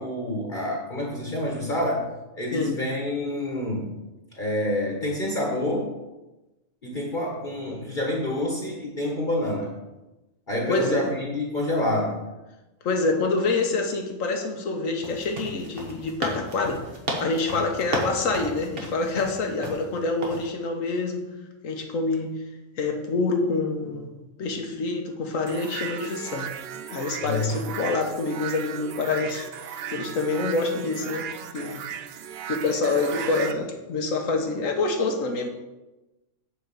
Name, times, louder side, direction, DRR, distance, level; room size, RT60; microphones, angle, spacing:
voice 1, 0.0-2.1 2.3-3.9 4.3-5.9 6.8-9.7 10.5-12.2 17.5-17.6 27.2-27.6, left 1 dB, 35° left, -1 dB, 1.5 m, -27 dB
voice 2, 10.7-11.1 12.8-16.8 17.2-21.2 21.6-22.3 22.8-24.1 24.4-26.5 26.9-29.5 29.9-31.3 31.5-31.8 32.5-35.5, left 3 dB, 70° left, 3 dB, 1.5 m, -26 dB
sound 1, 15.0-19.8 20.2-20.5, right 1 dB, 45° right, 1.6 m, -33 dB
sound 2, 25.5-33.5, right 8 dB, 60° right, 0.7 m, -36 dB
8.2 x 4.6 x 6.9 m, 1.0 s
omnidirectional pair, 1.4 m